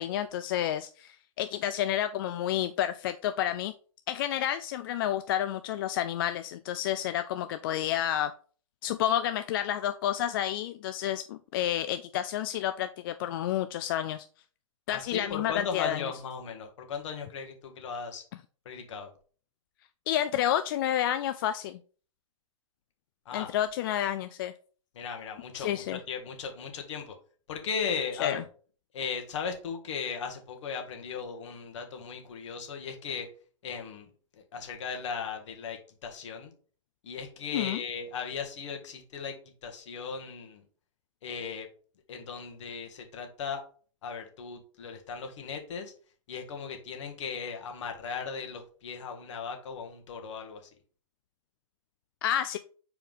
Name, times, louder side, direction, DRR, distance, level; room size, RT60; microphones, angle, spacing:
voice 1, 0.0-3.7 4.1-8.3 8.8-14.3 14.9-16.0 20.1-21.8 23.3-24.5 25.5-26.0 28.2-28.4 37.5-37.8 52.2-52.6, left 11 dB, 40° left, 10 dB, 0.4 m, -30 dB
voice 2, 14.9-18.2 18.7-19.1 23.3-23.5 24.9-27.2 27.5-28.4 28.9-33.3 33.6-36.5 37.0-39.3 39.6-40.6 41.2-41.7 42.1-43.6 44.0-45.9 46.3-50.6, left 6 dB, 60° left, 4 dB, 1.7 m, -37 dB
5.5 x 4.5 x 3.7 m, 0.41 s
hypercardioid pair, 130°, 17 cm